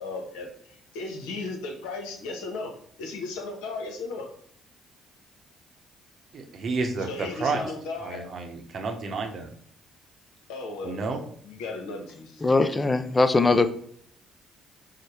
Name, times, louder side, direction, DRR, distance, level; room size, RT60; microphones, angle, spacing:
voice 1, 0.0-4.3 7.0-8.2 10.5-11.0 11.4-12.3, left 3 dB, 85° left, 2 dB, 0.8 m, -35 dB
voice 2, 6.3-7.7 8.0-9.5 10.8-11.2, right 4 dB, 55° right, 4 dB, 0.8 m, -31 dB
voice 3, 12.4-13.7, left 3 dB, 25° left, 12 dB, 0.4 m, -21 dB
4.9 x 2.1 x 4.4 m, 0.63 s
supercardioid pair, 60°, 0 cm